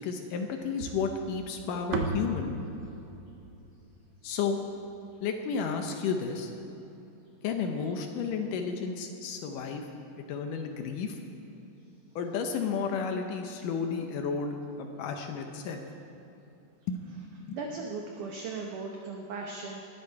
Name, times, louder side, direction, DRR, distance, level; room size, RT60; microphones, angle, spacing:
voice 1, 0.0-2.5 4.2-4.6 5.2-6.5 7.4-9.9 10.3-11.2 12.2-15.8 16.9-17.0 17.5-17.6, left 5 dB, 80° left, 4 dB, 1.9 m, -32 dB
sound 1, 0.8-5.1, right 3 dB, 85° right, 3.3 m, -37 dB
voice 2, 17.5-19.8, right 4 dB, 70° right, 1 dB, 2.0 m, -37 dB
20.0 x 13.0 x 4.8 m, 3.0 s
omnidirectional pair, 4.9 m